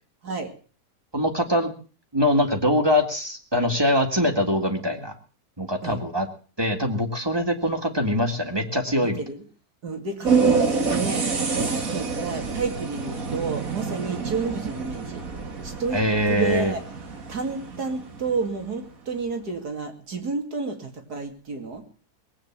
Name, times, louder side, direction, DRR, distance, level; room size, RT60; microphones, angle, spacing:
voice 1, 1.1-1.7 2.1-5.1 5.6-6.3 6.6-9.2 15.9-16.7, equal, 15° right, 4 dB, 2.0 m, -23 dB
voice 2, 9.0-9.4 9.8-15.2 15.6-16.0 16.3-16.8 17.3-21.8, right 4 dB, 80° right, 4 dB, 3.0 m, -31 dB
sound 1, 10.2-18.6, right 5 dB, 60° right, 2.3 m, -27 dB
20.0 x 8.9 x 7.4 m, 0.41 s
omnidirectional pair, 1.7 m